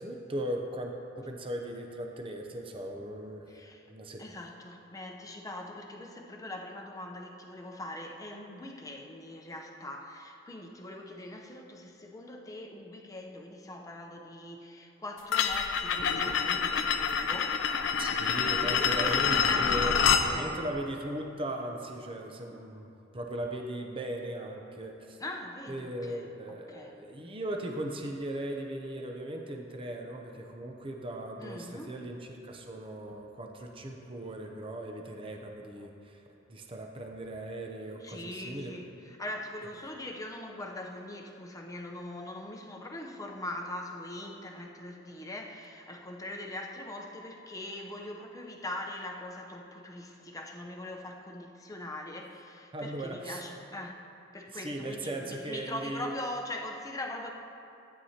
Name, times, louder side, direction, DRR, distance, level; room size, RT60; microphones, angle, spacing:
voice 1, 0.0-3.5 3.9-4.2 18.0-25.2 25.7-36.2 36.5-38.7 52.7-53.4 54.5-56.1, right 1 dB, 25° right, 2 dB, 0.7 m, -38 dB
voice 2, 3.5-3.8 4.2-17.6 17.8-18.2 18.6-19.7 20.0-20.6 25.2-26.2 26.7-26.9 31.4-32.0 38.0-54.0 54.3-57.3, left 1 dB, 15° left, 1 dB, 0.7 m, -41 dB
sound 1, 15.3-20.3, left 6 dB, 65° left, 0.5 m, -27 dB
14.0 x 9.3 x 2.9 m, 2.7 s
head